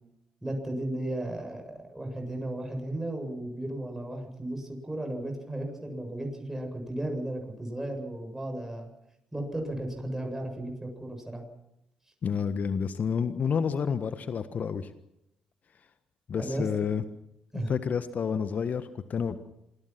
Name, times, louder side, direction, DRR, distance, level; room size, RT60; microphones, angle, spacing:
voice 1, 0.4-1.6 1.9-8.9 9.3-11.4 16.4-16.7 17.5-17.7, right 1 dB, 10° right, 2 dB, 8.0 m, -34 dB
voice 2, 12.2-14.9 16.3-17.0 17.7-19.4, left 6 dB, 50° left, 11 dB, 1.5 m, -29 dB
27.5 x 22.0 x 6.1 m, 0.82 s
hypercardioid pair, 45°, 4 cm